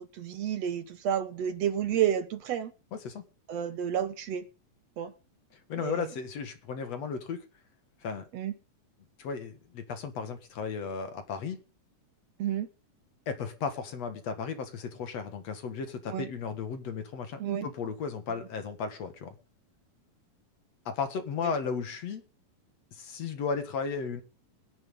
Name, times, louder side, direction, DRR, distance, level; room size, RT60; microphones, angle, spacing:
voice 1, 0.0-2.7 3.5-4.5 5.0-5.1 5.8-6.1 8.3-8.6 12.4-12.7 16.1-16.3 17.4-17.7, right 9 dB, 65° right, 1.9 m, -30 dB
voice 2, 2.9-3.2 5.7-7.4 8.0-8.2 9.2-11.6 13.3-19.4 20.9-22.2 22.9-24.2, left 5 dB, 55° left, 2.7 m, -35 dB
22.5 x 10.5 x 3.7 m
omnidirectional pair, 3.7 m